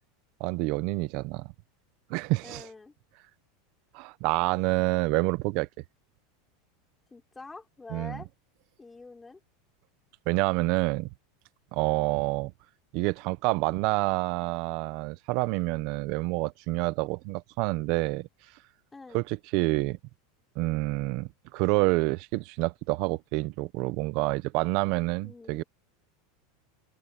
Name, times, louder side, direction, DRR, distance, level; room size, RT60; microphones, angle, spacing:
voice 1, 0.4-1.5 2.1-2.7 3.9-5.7 7.9-8.2 10.3-11.1 11.7-12.5 12.9-18.3 19.1-20.0 20.6-25.6, right 22 dB, 45° right, 0.7 m, -28 dB
voice 2, 2.4-2.9 7.1-8.3 8.8-9.4 18.9-19.2 25.2-25.6, left 3 dB, 10° left, 4.5 m, -46 dB
supercardioid pair, 165°, 0 cm